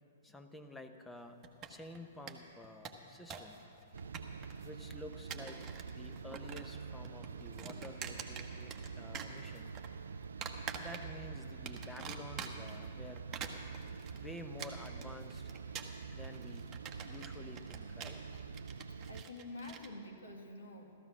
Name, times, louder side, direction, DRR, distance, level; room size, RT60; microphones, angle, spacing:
voice 1, 0.2-1.4 1.7-3.6 4.6-5.6 5.9-9.7 10.8-13.2 14.1-15.5 16.1-16.7 17.0-18.2, left 1 dB, 5° left, 7 dB, 0.8 m, -50 dB
sound 1, 1.4-2.0 2.3-2.4 2.6-3.6 3.8-4.7 5.1-5.9 6.2-6.8 7.0-8.9 9.1-9.9 10.4-11.3 11.7-12.8 13.2-19.9, right 7 dB, 25° right, 1.1 m, -46 dB
sound 2, 3.9-19.2, right 5 dB, 65° right, 0.3 m, -46 dB
voice 2, 19.1-21.0, left 2 dB, 65° left, 4 dB, 1.9 m, -48 dB
15.5 x 14.0 x 6.0 m, 2.7 s
figure-of-eight pair, 110°, 0 cm